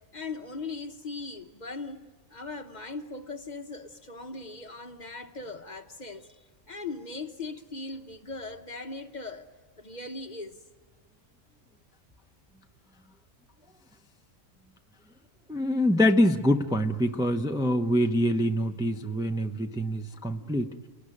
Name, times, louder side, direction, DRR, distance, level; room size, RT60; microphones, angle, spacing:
voice 1, 0.1-9.5 9.8-10.6, left 3 dB, 40° left, 1.0 m, -39 dB
voice 2, 15.5-20.7, equal, 5° right, 0.7 m, -25 dB
28.0 x 18.5 x 9.9 m
omnidirectional pair, 1.3 m